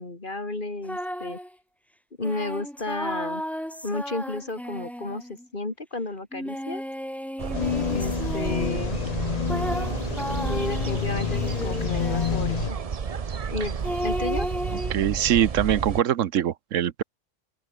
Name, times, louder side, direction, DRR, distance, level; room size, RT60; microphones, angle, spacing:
voice 1, 0.0-1.4 2.2-3.4 3.8-6.8 7.9-9.0 10.5-12.8 13.5-13.8 14.0-14.5, left 2 dB, 40° left, 2.9 m, -32 dB
sound 1, 0.9-1.5 2.2-5.5 6.3-8.9 9.5-12.6 13.8-14.9, equal, ahead, 2.2 m, -34 dB
sound 2, 7.4-16.0, right 6 dB, 35° right, 0.7 m, -31 dB
Spectre Ambient Soundscape, 7.5-12.7, left 9 dB, 75° left, 0.3 m, -29 dB
voice 2, 14.9-17.0, right 10 dB, 85° right, 1.2 m, -23 dB
open air
omnidirectional pair, 1.3 m